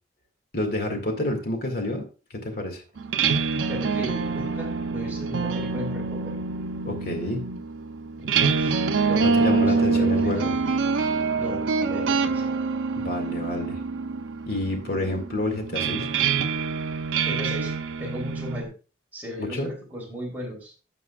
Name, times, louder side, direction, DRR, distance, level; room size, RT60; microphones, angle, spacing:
voice 1, 0.5-2.0 2.3-2.8 6.8-7.4 9.2-10.6 13.0-13.8 14.5-16.1 19.4-19.7, left 1 dB, 50° left, 3 dB, 2.2 m, -28 dB
sound 1, 3.0-18.7, right 5 dB, 85° right, 0.6 m, -26 dB
voice 2, 3.6-6.3 8.2-8.8 9.1-10.5 11.3-12.5 16.1-16.2 17.2-17.7 18.0-18.7 19.1-20.7, equal, 10° right, -3 dB, 3.4 m, -36 dB
15.5 x 5.3 x 2.4 m, 0.35 s
head